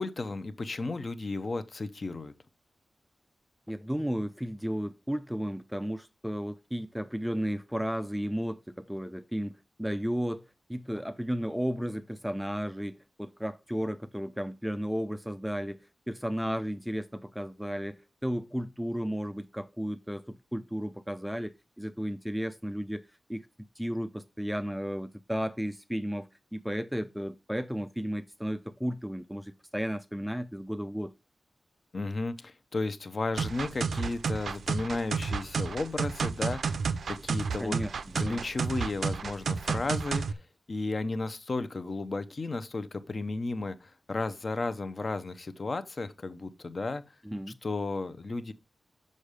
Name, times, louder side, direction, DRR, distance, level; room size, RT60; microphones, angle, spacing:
voice 1, 0.0-2.3 31.9-36.8 37.1-37.8 38.2-40.4 40.7-47.0 47.6-48.5, left 3 dB, 40° left, 0.7 m, -33 dB
voice 2, 3.7-23.0 23.3-23.5 23.8-31.1 37.6-38.5 47.2-47.6, equal, ahead, 0.4 m, -34 dB
sound 1, 33.4-40.3, right 5 dB, 75° right, 0.5 m, -31 dB
6.6 x 5.4 x 5.0 m
wide cardioid pair, 155°, 0 cm